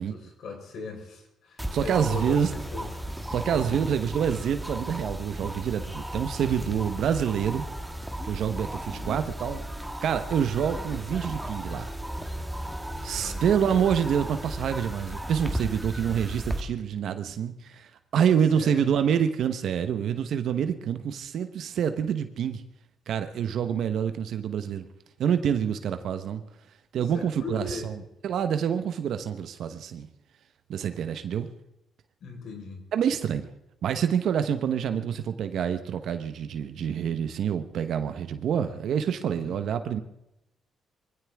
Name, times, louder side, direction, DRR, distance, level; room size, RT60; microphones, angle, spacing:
voice 1, 0.0-2.9 3.4-4.0 6.7-6.9 8.9-9.2 12.8-13.4 18.5-18.9 27.0-27.9 32.2-32.8 39.3-39.6, left 4 dB, 70° left, 3 dB, 4.5 m, -40 dB
sound 1, 1.6-16.6, right 1 dB, 5° right, 1.5 m, -35 dB
voice 2, 1.7-2.5 3.3-7.7 8.3-9.6 10.0-11.9 13.0-22.6 23.1-24.9 25.2-26.4 26.9-27.9 28.2-30.1 30.7-31.5 32.9-33.5 33.8-40.0, right 8 dB, 70° right, 9 dB, 1.0 m, -27 dB
22.5 x 15.5 x 3.5 m, 0.85 s
cardioid pair, 90°, 0 cm